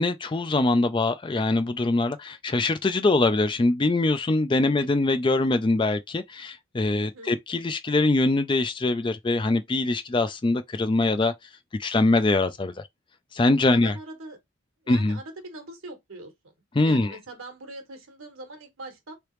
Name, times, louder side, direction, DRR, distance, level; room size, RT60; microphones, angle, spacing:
voice 1, 0.0-11.3 11.8-12.7 13.3-13.9 14.9-15.2 16.8-17.2, left 2 dB, 25° left, 0.3 m, -23 dB
voice 2, 7.0-7.4 13.7-14.4 14.8-16.3 16.8-19.1, right 2 dB, 80° right, 1.2 m, -42 dB
3.3 x 2.9 x 3.1 m
head